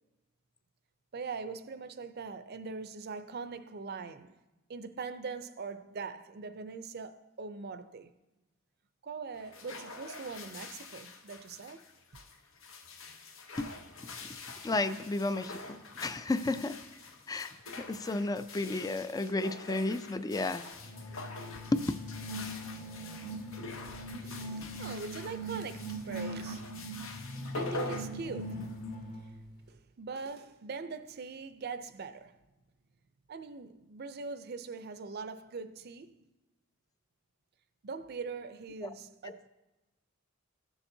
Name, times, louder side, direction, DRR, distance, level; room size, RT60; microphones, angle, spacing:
voice 1, 1.1-4.4 4.7-8.1 9.0-11.8 23.8-28.7 29.2-29.4 29.7-32.4 33.3-36.1 37.8-39.5, right 4 dB, 50° right, 0.5 m, -42 dB
sound 1, 9.3-28.9, left 3 dB, 75° left, 0.8 m, -45 dB
voice 2, 14.6-16.8 17.3-17.5 17.8-20.7 21.7-21.8 24.6-24.7 38.8-38.9, left 2 dB, 20° left, 0.3 m, -32 dB
sound 2, 20.8-29.4, right 1 dB, 40° left, 1.2 m, -41 dB
16.0 x 7.1 x 2.7 m
head